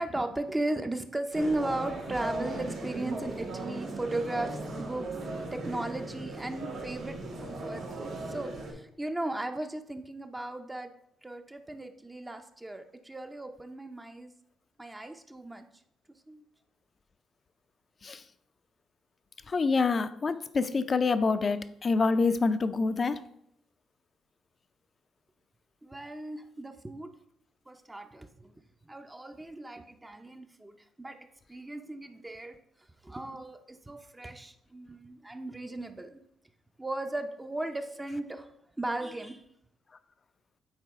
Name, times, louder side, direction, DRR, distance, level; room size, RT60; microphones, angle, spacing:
voice 1, 0.0-5.1 5.5-10.9 11.2-14.3 14.8-15.6 16.3-16.4 25.8-27.1 27.7-28.5 28.9-32.6 33.0-36.2 36.8-38.5 38.8-39.4, right 2 dB, 15° right, 6 dB, 0.6 m, -36 dB
sound 1, 1.3-8.7, right 2 dB, 85° right, 2.5 m, -37 dB
voice 2, 19.5-23.2, left 4 dB, 35° left, 12 dB, 0.5 m, -26 dB
8.9 x 4.2 x 3.6 m, 0.73 s
cardioid pair, 90°, 0 cm